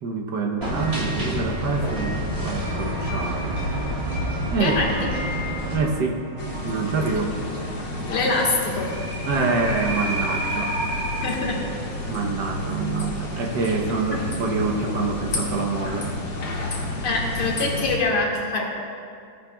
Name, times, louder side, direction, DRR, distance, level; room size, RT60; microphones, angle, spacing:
voice 1, 0.0-3.5 4.5-4.8 5.7-6.2 6.6-7.3 9.2-10.8 12.1-16.1, right 4 dB, 60° right, 2 dB, 1.4 m, -26 dB
sound 1, 0.6-5.8, equal, 30° right, 2.4 m, -28 dB
sound 2, 2.6-11.3, right 1 dB, 80° right, 2.8 m, -34 dB
voice 2, 4.6-5.1 8.1-8.9 11.2-11.6 14.1-14.2 17.0-18.6, left 3 dB, 80° left, -2 dB, 2.4 m, -24 dB
sound 3, 6.4-18.0, left 2 dB, 60° left, 2.1 m, -31 dB
16.5 x 10.5 x 2.2 m, 2.4 s
omnidirectional pair, 2.3 m